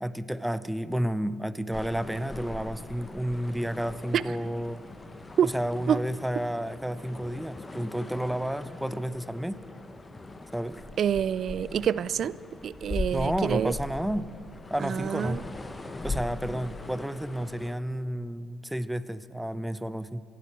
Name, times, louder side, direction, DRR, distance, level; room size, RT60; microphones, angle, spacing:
voice 1, 0.0-4.8 5.4-9.6 10.5-10.8 13.1-14.3 14.7-15.4 16.0-20.2, equal, 5° right, 16 dB, 0.6 m, -31 dB
sound 1, 1.7-17.7, left 2 dB, 20° left, 1.0 m, -40 dB
voice 2, 11.0-12.3 12.6-13.7 14.8-15.4, right 9 dB, 50° right, 19 dB, 0.3 m, -26 dB
26.5 x 11.0 x 4.5 m, 2.4 s
figure-of-eight pair, 50°, 0 cm